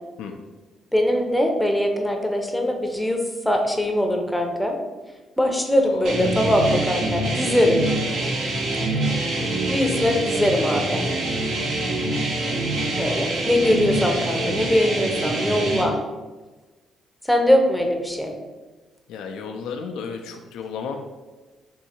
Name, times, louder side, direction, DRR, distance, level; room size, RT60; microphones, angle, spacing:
voice 1, 0.9-4.8 5.4-7.8 9.7-11.0 13.0-16.0 17.2-18.3, left 1 dB, 5° left, 3 dB, 0.6 m, -21 dB
voice 2, 5.8-6.5 19.1-21.0, left 6 dB, 85° left, 4 dB, 0.3 m, -34 dB
sound 1, 6.0-15.8, right 2 dB, 70° right, 0.9 m, -25 dB
3.7 x 2.7 x 4.3 m, 1.2 s
cardioid pair, 90°, 0 cm